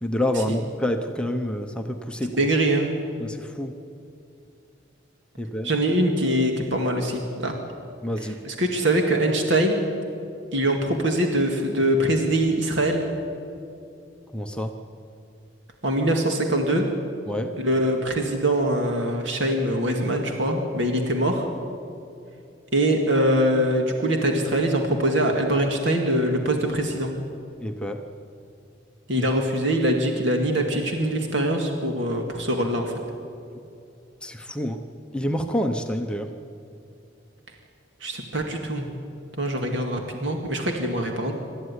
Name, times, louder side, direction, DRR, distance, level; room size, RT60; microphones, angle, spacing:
voice 1, 0.0-2.5 3.2-3.7 5.4-5.7 8.0-8.4 14.3-14.7 17.3-17.6 27.6-28.0 29.2-29.3 34.2-34.8 35.1-36.3, left 1 dB, 5° left, 3 dB, 0.9 m, -28 dB
voice 2, 2.3-2.9 5.6-7.5 8.2-9.8 10.5-13.0 15.8-16.9 17.6-21.5 22.7-27.1 29.1-33.0 38.0-38.9 39.4-41.3, right 1 dB, 65° right, 2 dB, 2.1 m, -23 dB
26.5 x 13.5 x 9.8 m, 2.6 s
head